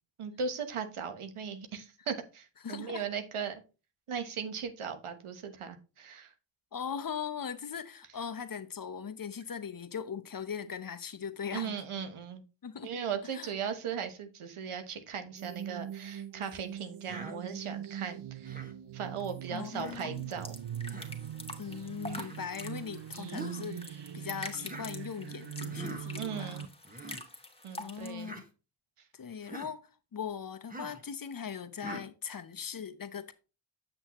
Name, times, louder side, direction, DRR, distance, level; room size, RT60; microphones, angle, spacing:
voice 1, 0.2-3.6 4.1-6.3 11.5-12.4 12.8-18.6 18.9-20.6 26.2-26.6 27.6-28.3, right 6 dB, 80° right, 1.2 m, -38 dB
voice 2, 2.6-3.0 6.7-11.7 12.6-12.9 13.3-13.5 19.5-20.3 21.6-26.6 27.8-28.4 29.1-33.3, left 7 dB, 45° left, 0.8 m, -40 dB
sound 1, 15.4-26.7, right 9 dB, 55° right, 0.7 m, -42 dB
Human voice, 17.1-17.4 18.5-18.7 19.7-20.0 20.9-21.1 22.1-22.4 23.3-23.7 24.6-24.9 25.7-26.0 26.8-27.2 28.2-28.4 29.4-29.7 30.7-31.0 31.8-32.1, right 1 dB, 15° right, 1.5 m, -43 dB
sound 2, 19.2-28.1, left 2 dB, 10° left, 1.5 m, -46 dB
7.8 x 6.2 x 3.0 m
cardioid pair, 55°, 50 cm